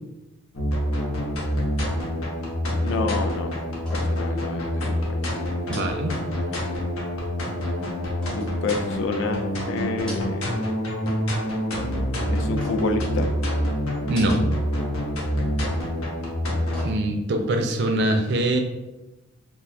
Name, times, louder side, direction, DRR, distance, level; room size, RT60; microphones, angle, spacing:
sound 1, 0.5-16.9, equal, 80° left, 0.8 m, -27 dB
voice 1, 2.8-3.5 3.9-5.2 8.3-10.6 12.3-13.3 15.4-15.6, left 3 dB, 60° left, 6 dB, 0.3 m, -28 dB
sound 2, 3.8-4.3 4.6-4.8 5.6-6.7 8.2-9.3 9.9-10.6 10.9-11.5 12.6-13.1 14.0-14.7 15.0-15.2 16.3-17.4 17.8-17.9, left 1 dB, 5° left, 0.6 m, -42 dB
voice 2, 5.7-6.2 14.1-14.4 16.8-18.6, right 1 dB, 50° right, 5 dB, 0.4 m, -23 dB
2.4 x 2.3 x 4.0 m, 1.0 s
head